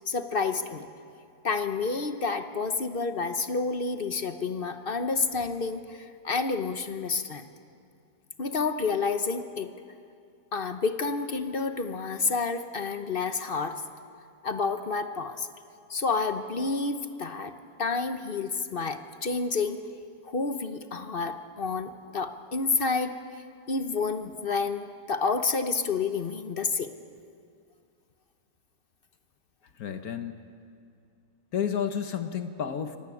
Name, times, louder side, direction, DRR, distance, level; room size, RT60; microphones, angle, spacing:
voice 1, 0.1-0.9 1.4-7.5 8.4-9.7 10.5-13.8 14.4-15.5 15.9-17.5 17.8-19.8 20.2-23.2 23.7-26.9, left 4 dB, 40° left, 8 dB, 0.9 m, -29 dB
voice 2, 29.7-30.4 31.5-33.0, left 8 dB, 60° left, 8 dB, 1.4 m, -31 dB
25.0 x 17.5 x 8.5 m, 2.4 s
omnidirectional pair, 1.8 m